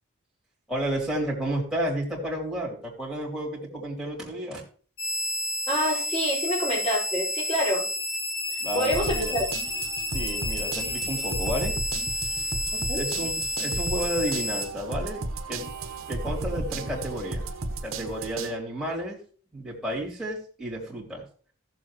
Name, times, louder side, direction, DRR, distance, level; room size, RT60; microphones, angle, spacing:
voice 1, 0.7-4.6 8.6-9.4 10.1-11.8 12.9-15.2 15.5-15.7 16.1-17.5 17.8-19.2 19.5-21.2, right 1 dB, ahead, -5 dB, 3.2 m, -31 dB
sound 1, 5.0-14.6, left 1 dB, 85° left, 5.6 m, -30 dB
voice 2, 5.7-7.9 8.7-9.4 12.7-13.0, equal, 30° left, -7 dB, 4.9 m, -27 dB
sound 2, 8.9-18.5, right 2 dB, 70° right, 1.1 m, -34 dB
15.5 x 7.2 x 3.1 m, 0.42 s
head